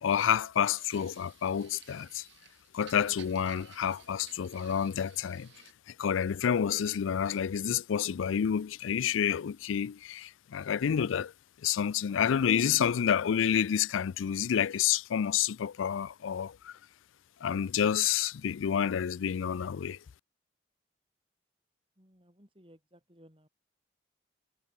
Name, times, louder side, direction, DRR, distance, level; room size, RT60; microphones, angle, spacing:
voice 1, 0.0-2.3 2.7-5.5 5.9-11.3 11.6-16.8 17.4-20.0, left 8 dB, 90° left, 0.4 m, -29 dB
sound 1, 0.7-5.7, right 10 dB, 70° right, 4.0 m, -56 dB
voice 2, 22.0-23.5, equal, 25° right, 5.9 m, -59 dB
head